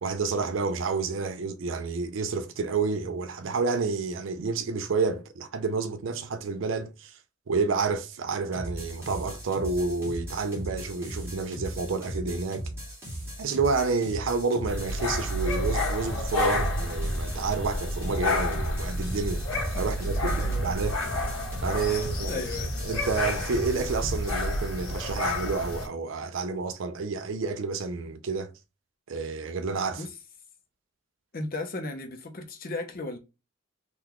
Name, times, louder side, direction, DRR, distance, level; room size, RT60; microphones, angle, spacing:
voice 1, 0.0-7.2 7.5-12.7 13.4-19.4 19.8-21.0 21.6-22.4 22.8-28.5 29.1-30.0, right 4 dB, 65° right, 0.4 m, -29 dB
sound 1, 8.5-24.5, equal, 10° right, 1.0 m, -38 dB
sound 2, 14.7-25.9, left 1 dB, 85° left, 1.5 m, -30 dB
voice 2, 20.2-20.8 21.8-22.7 29.9-30.1 31.3-33.2, left 2 dB, 45° left, 0.6 m, -36 dB
3.8 x 2.3 x 2.9 m
head